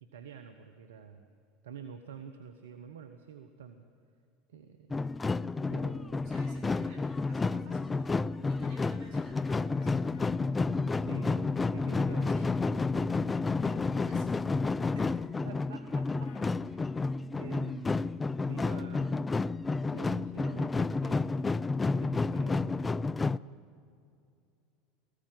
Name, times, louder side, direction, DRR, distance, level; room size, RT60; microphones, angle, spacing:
voice 1, 0.0-1.3 1.6-3.8 4.5-5.0 5.7-6.4 11.0-12.4 15.4-17.0 17.3-18.2 18.5-19.3 19.9-21.3 22.0-22.8, right 7 dB, 80° right, 9 dB, 0.9 m, -48 dB
sound 1, 4.9-23.4, left 3 dB, 20° left, 0.4 m, -30 dB
voice 2, 6.2-10.0 12.3-12.5 14.0-14.6 14.9-15.3, right 2 dB, 60° right, 2 dB, 6.9 m, -56 dB
sound 2, 9.1-10.3 12.1-12.4 13.6-14.0 16.2-16.6, left 9 dB, 70° left, 1.4 m, -58 dB
18.5 x 15.5 x 9.3 m, 2.5 s
hypercardioid pair, 80°, 0 cm